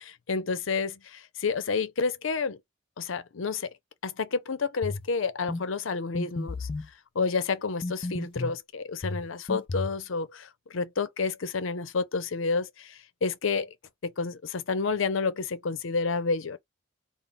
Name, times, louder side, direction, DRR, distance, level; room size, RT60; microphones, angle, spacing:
voice 1, 0.3-2.6 3.0-3.7 4.0-6.7 7.1-13.7 14.0-16.6, left 4 dB, 75° left, 0.6 m, -30 dB
sound 1, 4.8-5.1 5.5-5.7 6.2-6.9 7.8-8.6 9.0-10.0, left 2 dB, 30° left, 0.3 m, -33 dB
3.7 x 2.0 x 3.6 m
head